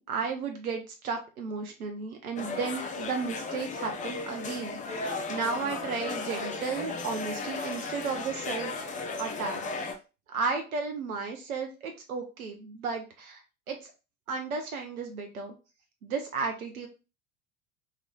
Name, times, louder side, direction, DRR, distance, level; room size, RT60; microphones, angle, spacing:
voice 1, 0.0-8.8 9.2-9.9 10.3-13.4 13.7-13.9 14.3-15.5 16.0-16.9, right 5 dB, 75° right, 4 dB, 0.9 m, -34 dB
sound 1, 2.4-10.0, left 3 dB, 20° left, 0.5 m, -35 dB
3.0 x 2.6 x 4.2 m, 0.30 s
figure-of-eight pair, 70°, 43 cm